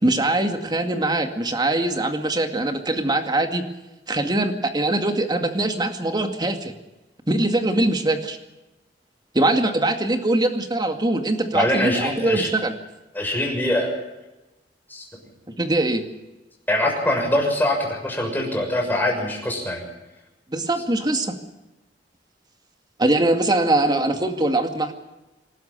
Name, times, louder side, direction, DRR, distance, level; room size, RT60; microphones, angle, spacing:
voice 1, 0.0-3.7 4.1-6.7 7.3-8.4 9.3-12.7 15.6-16.0 20.5-21.3 23.0-24.9, right 2 dB, 25° right, 6 dB, 2.2 m, -22 dB
voice 2, 11.5-12.5 13.1-13.9 14.9-15.0 16.7-19.8, left 1 dB, 10° left, 1 dB, 6.5 m, -23 dB
26.5 x 12.5 x 9.1 m, 1.0 s
head